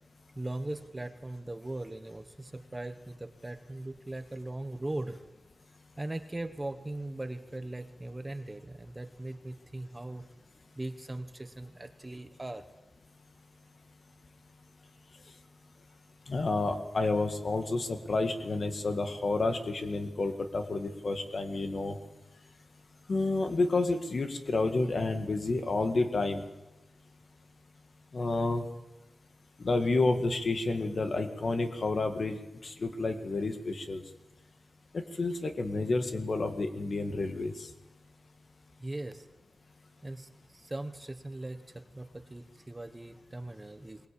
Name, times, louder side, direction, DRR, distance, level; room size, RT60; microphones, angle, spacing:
voice 1, 0.4-5.2 6.0-10.3 10.8-12.6 38.8-39.2 40.0-44.0, right 2 dB, 15° right, 9 dB, 1.0 m, -39 dB
voice 2, 16.3-22.0 23.1-26.4 28.1-28.6 29.6-32.4 32.6-34.0 34.9-37.5, left 3 dB, 45° left, 6 dB, 2.0 m, -30 dB
22.0 x 20.5 x 8.6 m, 1.1 s
wide cardioid pair, 170°, 0 cm